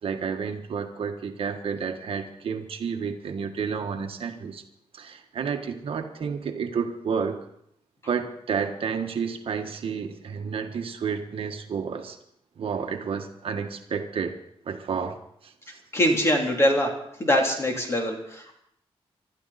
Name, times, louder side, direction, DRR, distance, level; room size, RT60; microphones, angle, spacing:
voice 1, 0.0-4.6 4.9-7.4 8.1-12.2 12.6-14.3 14.6-15.2 15.4-15.8, right 6 dB, 60° right, 5 dB, 1.5 m, -30 dB
voice 2, 15.9-16.9 17.2-18.6, equal, 25° left, 1 dB, 3.3 m, -23 dB
25.0 x 12.5 x 4.2 m, 0.72 s
wide cardioid pair, 140°, 10 cm